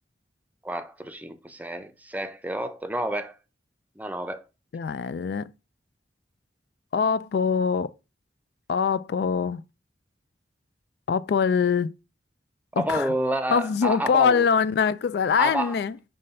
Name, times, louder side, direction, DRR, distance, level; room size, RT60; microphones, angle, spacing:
voice 1, 0.6-3.4 4.0-4.4 12.7-14.5 15.4-15.8, right 1 dB, 10° right, 0.5 m, -29 dB
voice 2, 4.7-5.5 6.9-7.9 8.7-9.6 11.1-11.9 12.8-13.1 13.5-15.9, left 6 dB, 60° left, 0.3 m, -23 dB
5.5 x 3.2 x 5.4 m
head